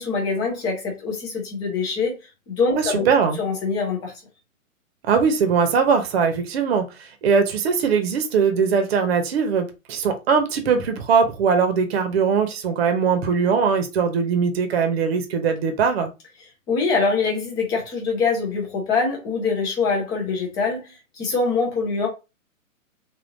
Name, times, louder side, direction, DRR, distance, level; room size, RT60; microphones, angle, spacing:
voice 1, 0.0-2.2 2.5-3.0 3.4-4.1 16.7-22.1, left 4 dB, 10° left, 0.5 m, -24 dB
voice 2, 2.8-3.4 5.1-16.1, right 6 dB, 45° right, 0.8 m, -21 dB
3.6 x 2.4 x 2.6 m
figure-of-eight pair, 125°, 41 cm